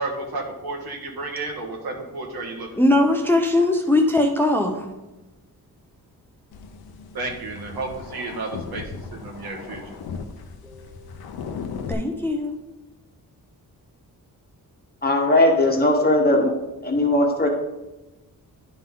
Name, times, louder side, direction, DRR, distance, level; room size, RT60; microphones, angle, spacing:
voice 1, 0.0-2.7 7.1-8.8 9.1-10.0, right 3 dB, 80° right, 0 dB, 1.5 m, -32 dB
voice 2, 2.8-4.9 10.6-11.1 11.9-12.5, left 2 dB, 5° left, 3 dB, 0.5 m, -20 dB
sound 1, 6.5-11.9, left 5 dB, 85° left, 0.7 m, -37 dB
voice 3, 15.0-16.5 16.8-17.5, left 1 dB, 25° left, 1 dB, 1.2 m, -18 dB
11.0 x 3.9 x 3.7 m, 1.0 s
wide cardioid pair, 145°, 36 cm